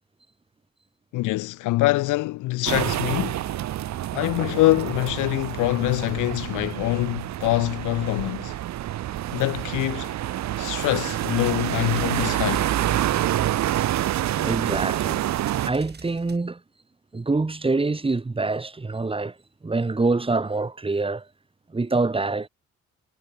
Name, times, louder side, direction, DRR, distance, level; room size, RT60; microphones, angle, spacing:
voice 1, 1.1-3.4 4.1-8.5 9.3-10.1 10.6-12.7, left 19 dB, 85° left, 0.6 m, -24 dB
sound 1, 2.7-15.7, right 13 dB, 65° right, 0.9 m, -27 dB
sound 2, 10.7-16.4, right 5 dB, 35° right, 7.8 m, -43 dB
voice 2, 14.4-15.3 15.6-16.6 17.1-19.4 19.6-21.3 21.7-22.5, right 3 dB, 20° right, 1.7 m, -25 dB
cardioid pair, 90°, 30 cm